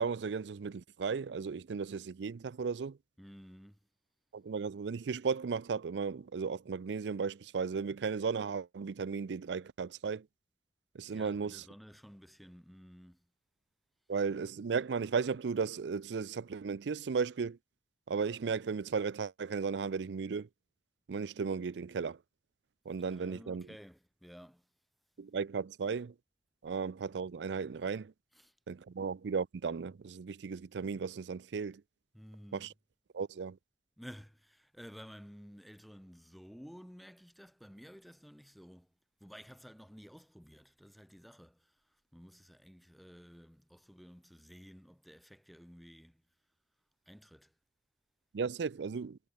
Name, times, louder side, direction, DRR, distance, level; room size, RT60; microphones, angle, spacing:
voice 1, 0.0-3.0 4.3-10.3 10.9-11.6 14.1-17.6 18.1-20.5 21.1-22.2 22.9-23.7 25.2-26.1 26.6-28.1 28.7-31.8 32.5-32.7 33.1-33.6 48.3-49.2, right 5 dB, 85° right, 0.4 m, -35 dB
voice 2, 3.2-3.8 11.1-13.3 23.1-24.7 28.3-28.5 32.1-32.7 34.0-38.9 39.2-46.2 47.1-47.5, equal, ahead, 1.0 m, -53 dB
head